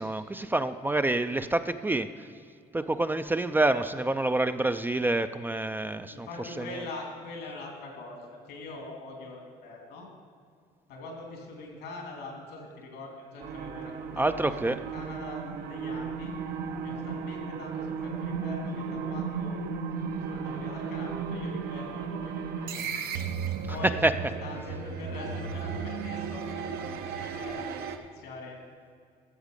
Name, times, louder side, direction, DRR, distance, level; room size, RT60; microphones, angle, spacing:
voice 1, 0.0-2.1 2.7-6.8 14.1-14.8 23.7-24.3, right 2 dB, 10° right, 10 dB, 0.3 m, -27 dB
voice 2, 6.0-10.1 10.9-14.4 14.7-16.3 16.8-19.6 20.2-22.9 23.7-24.0 24.4-28.6, left 2 dB, 85° left, 0 dB, 2.8 m, -43 dB
sound 1, 13.4-28.0, right 5 dB, 70° right, 0.8 m, -35 dB
13.0 x 7.3 x 5.2 m, 2.2 s
cardioid pair, 110°, 17 cm